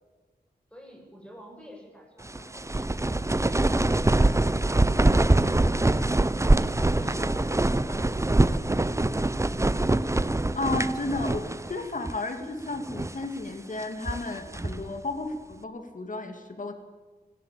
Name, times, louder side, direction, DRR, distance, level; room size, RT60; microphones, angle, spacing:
voice 1, 0.7-6.4, equal, 5° left, 0 dB, 7.8 m, -51 dB
sound 1, 2.3-11.8 12.0-12.2 12.8-13.3 13.8-14.9, right 2 dB, 15° right, 0.8 m, -24 dB
voice 2, 10.5-16.7, left 2 dB, 50° left, 6 dB, 2.5 m, -33 dB
18.0 x 17.5 x 8.8 m, 1.3 s
wide cardioid pair, 80°, 17 cm